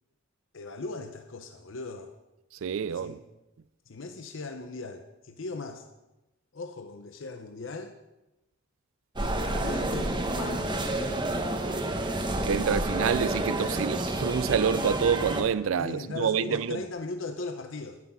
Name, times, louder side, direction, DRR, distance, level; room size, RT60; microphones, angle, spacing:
voice 1, 0.5-2.1 2.9-3.2 3.9-5.9 6.5-8.0 9.2-11.0 15.8-18.0, left 3 dB, 65° left, 0.7 m, -39 dB
voice 2, 2.6-3.2 12.4-16.8, right 7 dB, 75° right, 0.4 m, -27 dB
sound 1, 9.2-15.4, right 1 dB, 25° right, 0.9 m, -29 dB
10.5 x 9.5 x 5.5 m
head